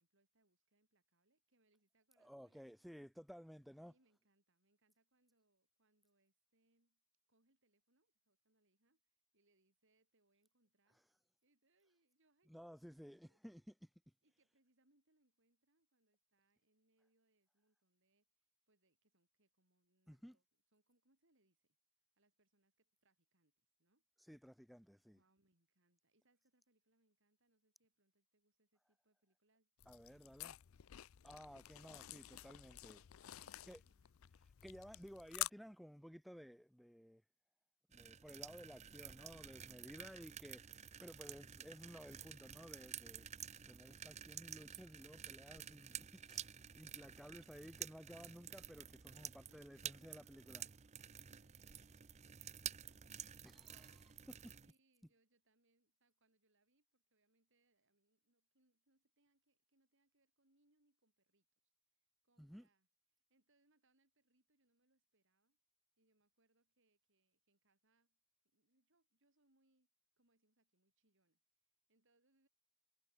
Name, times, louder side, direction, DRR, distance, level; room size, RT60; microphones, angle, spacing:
voice 1, 0.0-2.9 3.8-7.0 7.3-11.0 11.4-12.7 13.2-13.4 14.2-20.4 20.7-21.8 22.2-24.1 25.1-30.2 33.2-34.2 49.1-50.3 51.0-53.9 54.6-65.6 66.0-68.2 68.4-69.9 70.2-72.5, right 2 dB, 55° right, 5.5 m, -82 dB
voice 2, 2.2-3.9 12.5-13.9 20.1-20.4 24.2-25.2 29.9-30.5 31.2-33.0 33.7-33.8 34.4-37.2 37.9-43.3 43.7-50.6 53.4-54.5 62.4-62.7, equal, ahead, 0.8 m, -56 dB
sound 1, 29.8-35.5, left 15 dB, 65° left, 0.5 m, -49 dB
sound 2, 37.9-54.7, right 9 dB, 30° right, 0.6 m, -51 dB
head